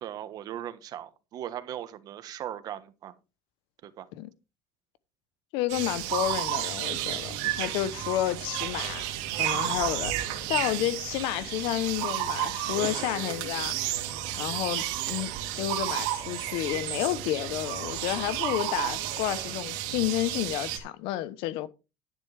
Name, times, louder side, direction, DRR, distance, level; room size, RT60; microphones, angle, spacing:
voice 1, 0.0-3.1 3.8-4.1, right 11 dB, 45° right, 1.3 m, -38 dB
voice 2, 5.5-9.0 9.4-13.8 14.4-15.3 15.6-21.7, left 14 dB, 75° left, 1.0 m, -31 dB
sound 1, 5.7-20.8, right 12 dB, 90° right, 2.4 m, -32 dB
11.0 x 10.0 x 3.4 m
cardioid pair, 150°, 9 cm